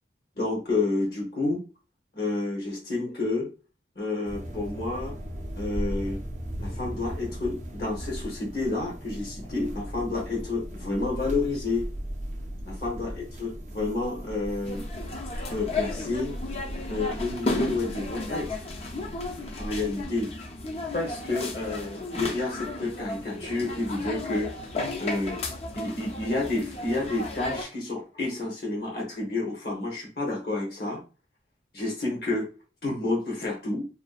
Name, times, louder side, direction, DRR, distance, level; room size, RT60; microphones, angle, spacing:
voice 1, 0.4-1.6 2.1-3.5 4.0-5.1 5.5-6.2 6.6-11.9 12.7-14.8 15.5-16.3 16.9-18.6 19.6-20.3 20.9-24.5 25.0-25.4 25.8-31.0 31.7-32.5 32.8-33.9, left 2 dB, 60° left, -3 dB, 0.8 m, -30 dB
sound 1, 4.2-20.0, equal, 40° right, 0.4 m, -37 dB
sound 2, 14.6-27.6, left 2 dB, 35° left, 0.4 m, -34 dB
2.5 x 2.2 x 2.3 m, 0.33 s
head